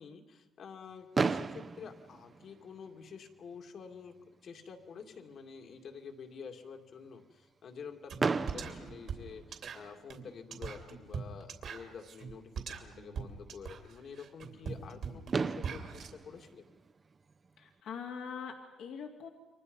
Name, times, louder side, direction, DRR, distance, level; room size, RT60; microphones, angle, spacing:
voice 1, 0.0-4.1 4.4-16.6, left 6 dB, 60° left, 4 dB, 2.3 m, -49 dB
Fireworks, 1.1-3.2 4.0-4.1 4.3-4.5 4.8-4.9 8.2-10.0 11.7-11.8 14.9-15.0 15.3-17.6, right 4 dB, 35° right, 0.7 m, -35 dB
sound 1, 8.1-8.2 8.5-16.1, right 6 dB, 65° right, 2.9 m, -42 dB
voice 2, 17.6-19.3, left 6 dB, 80° left, 1 dB, 2.4 m, -43 dB
29.0 x 23.5 x 5.4 m, 1.1 s
cardioid pair, 90°, 0 cm